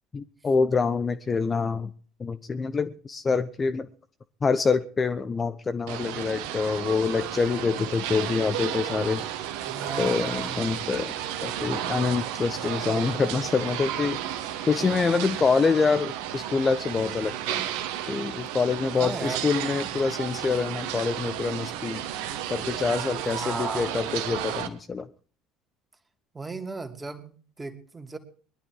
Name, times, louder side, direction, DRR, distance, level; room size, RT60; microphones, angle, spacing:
voice 1, 0.1-1.9 2.2-3.9 4.4-9.3 10.0-11.1 11.4-14.2 14.7-17.7 18.1-22.0 22.5-25.1, left 5 dB, 25° left, 12 dB, 0.9 m, -26 dB
sound 1, 5.9-24.7, right 11 dB, 60° right, 1.7 m, -33 dB
voice 2, 9.6-10.8 19.0-19.5 23.2-23.9 26.3-28.2, right 3 dB, 15° right, 6 dB, 2.6 m, -36 dB
21.5 x 12.0 x 4.8 m, 0.42 s
figure-of-eight pair, 60°, 0 cm